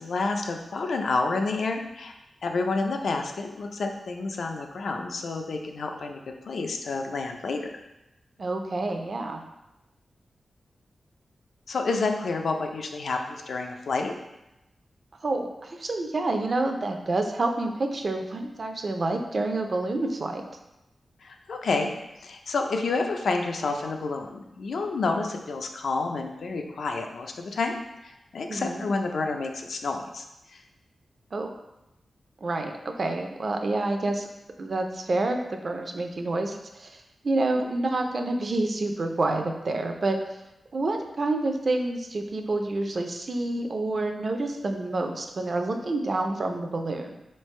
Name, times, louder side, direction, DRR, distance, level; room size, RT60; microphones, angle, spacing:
voice 1, 0.0-2.1 2.4-6.2 6.5-7.7 11.7-14.1 21.2-21.9 22.2-27.7 28.0-30.2, left 3 dB, 70° left, 3 dB, 0.4 m, -29 dB
voice 2, 8.4-9.4 15.2-20.4 28.5-28.9 31.3-31.5 32.4-34.3 34.6-40.2 40.7-47.1, right 2 dB, 45° right, 4 dB, 0.4 m, -28 dB
4.4 x 3.2 x 3.1 m, 0.94 s
wide cardioid pair, 140°, 0 cm